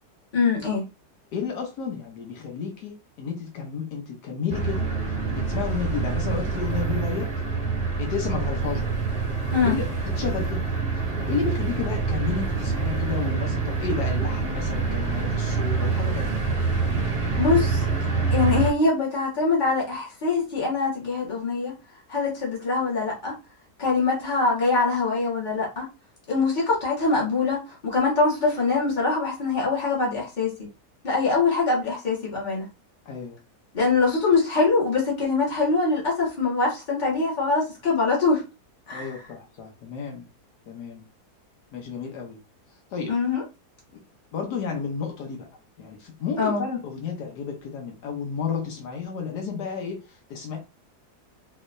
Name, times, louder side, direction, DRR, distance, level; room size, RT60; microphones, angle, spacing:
voice 1, 0.3-0.9 9.5-9.8 17.4-17.8 18.3-21.7 22.1-23.3 23.8-25.9 26.3-30.7 31.0-32.7 33.7-38.4 38.9-39.2 43.1-43.4 46.4-46.6, left 4 dB, 30° left, 1.5 m, -23 dB
voice 2, 1.3-7.3 8.0-8.9 9.6-9.8 10.1-10.6 11.2-16.4 33.1-33.4 38.9-40.3 40.7-41.0 41.7-42.4 42.9-43.1 44.3-45.5 45.8-50.6, left 6 dB, 80° left, 1.4 m, -32 dB
sound 1, 4.5-18.7, right 4 dB, 30° right, 0.6 m, -26 dB
3.8 x 3.0 x 2.6 m
omnidirectional pair, 1.7 m